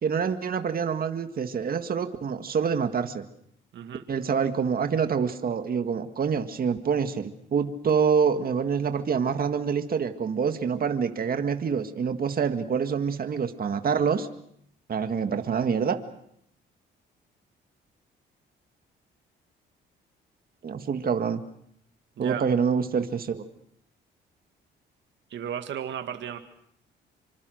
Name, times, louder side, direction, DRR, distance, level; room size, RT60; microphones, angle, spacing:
voice 1, 0.0-3.2 4.1-14.3 14.9-16.0 20.6-21.4 22.2-23.4, right 6 dB, 50° right, 8 dB, 1.9 m, -26 dB
voice 2, 3.7-4.0 22.2-22.5 25.3-26.4, right 9 dB, 65° right, 7 dB, 2.1 m, -34 dB
26.0 x 25.0 x 6.5 m, 0.70 s
cardioid pair, 90°, 20 cm